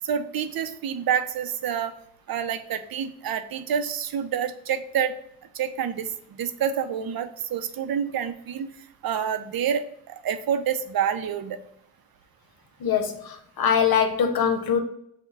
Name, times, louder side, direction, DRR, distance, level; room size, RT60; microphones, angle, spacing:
voice 1, 0.0-2.0 2.3-5.1 5.5-8.7 9.0-11.6, right 8 dB, 80° right, 10 dB, 0.5 m, -28 dB
voice 2, 12.8-14.8, left 7 dB, 85° left, 5 dB, 0.8 m, -23 dB
5.9 x 2.2 x 4.0 m, 0.72 s
wide cardioid pair, 110°, 35 cm